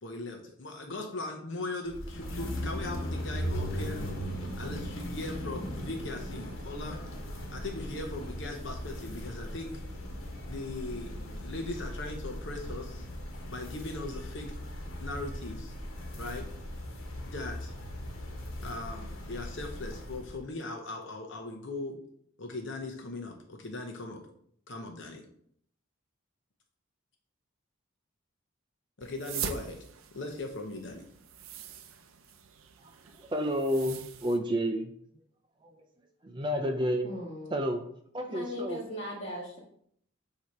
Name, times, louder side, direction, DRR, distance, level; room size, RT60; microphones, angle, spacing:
voice 1, 0.0-4.0 4.6-7.0 7.5-9.8 10.5-13.0 13.5-14.6 15.0-15.7 16.1-16.5 17.2-17.7 18.6-22.0 22.4-24.2 24.7-25.2 29.0-29.8 30.1-31.1, left 2 dB, 60° left, 3 dB, 0.8 m, -39 dB
sound 1, 1.9-20.4, equal, 80° left, 1.4 m, -38 dB
sound 2, 29.0-34.4, right 7 dB, 85° right, 0.6 m, -42 dB
voice 2, 32.8-34.9 35.6-35.9 36.2-37.1 37.5-37.8 38.1-38.8, equal, 20° right, 4 dB, 0.5 m, -31 dB
voice 3, 37.0-37.5 38.3-39.6, left 1 dB, 30° left, -4 dB, 1.9 m, -38 dB
7.7 x 2.8 x 4.6 m, 0.66 s
head